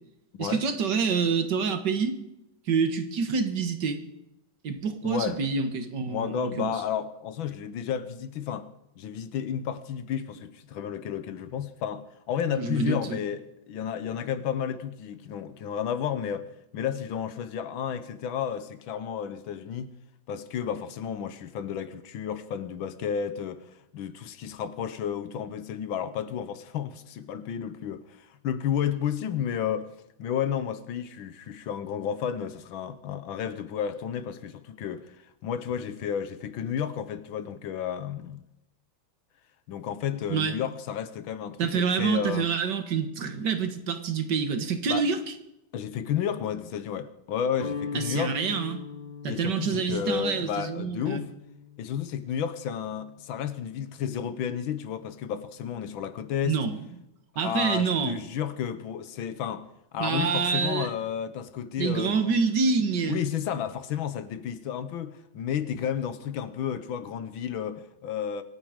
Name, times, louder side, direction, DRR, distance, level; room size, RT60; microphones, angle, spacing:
voice 1, 0.4-2.2 2.7-4.0 4.6-6.8 12.5-13.2 40.3-40.5 41.6-45.2 47.9-48.8 49.2-51.3 56.4-56.8 57.4-58.2 60.0-60.9 61.8-63.2, right 5 dB, 60° right, 1.9 m, -27 dB
voice 2, 5.0-5.4 6.1-8.7 9.0-16.5 16.7-19.9 20.3-23.7 23.9-29.9 30.2-35.2 35.4-38.4 39.7-42.5 44.9-45.0 45.7-48.4 49.3-51.3 51.8-56.6 57.4-59.7 59.9-62.3 63.1-68.4, left 8 dB, 80° left, 1.7 m, -32 dB
Guitar, 47.5-53.6, left 5 dB, 55° left, 2.3 m, -41 dB
25.0 x 9.4 x 5.1 m
omnidirectional pair, 2.2 m